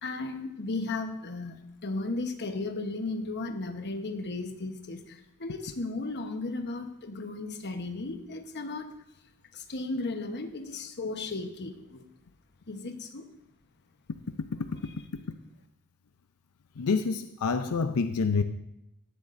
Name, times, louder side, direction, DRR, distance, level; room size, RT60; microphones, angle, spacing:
voice 1, 0.0-8.9 9.5-12.1 12.7-13.3 14.7-14.9, left 3 dB, 50° left, 1.1 m, -35 dB
voice 2, 16.8-18.4, left 4 dB, 90° left, 0.6 m, -27 dB
17.0 x 12.0 x 2.6 m
head